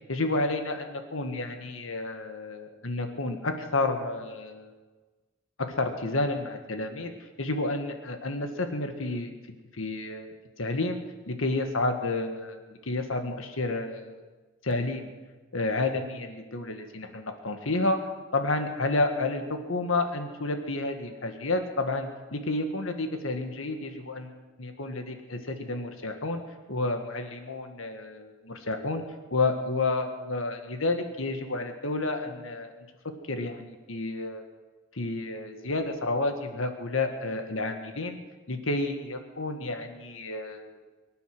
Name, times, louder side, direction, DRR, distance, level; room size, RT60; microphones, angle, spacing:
voice 1, 0.1-4.7 5.7-11.0 11.3-14.2 14.6-15.1 15.5-18.0 18.3-26.4 26.7-28.3 28.7-29.0 29.3-32.7 33.3-34.4 34.9-38.2 38.5-40.8, left 2 dB, 80° left, 6 dB, 1.6 m, -30 dB
23.5 x 9.7 x 6.1 m, 1.3 s
head